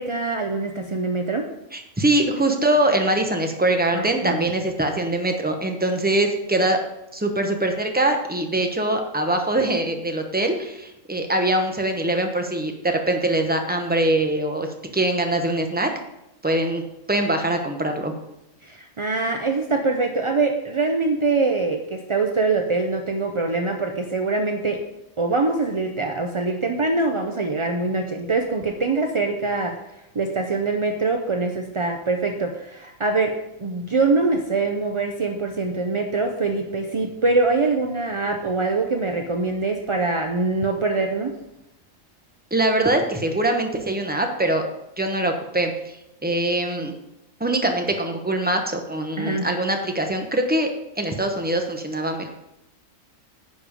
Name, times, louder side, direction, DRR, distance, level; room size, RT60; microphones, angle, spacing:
voice 1, 0.0-1.5 3.9-4.5 18.6-24.8 25.2-29.8 30.1-41.4 49.2-49.5, right 3 dB, 50° right, 4 dB, 0.3 m, -24 dB
voice 2, 1.7-6.8 7.1-14.7 14.9-15.9 16.4-16.8 17.1-18.1 42.5-44.6 45.0-46.9 47.4-50.7 51.0-52.3, right 1 dB, 10° right, 4 dB, 0.7 m, -23 dB
9.9 x 5.3 x 5.0 m, 0.88 s
omnidirectional pair, 1.4 m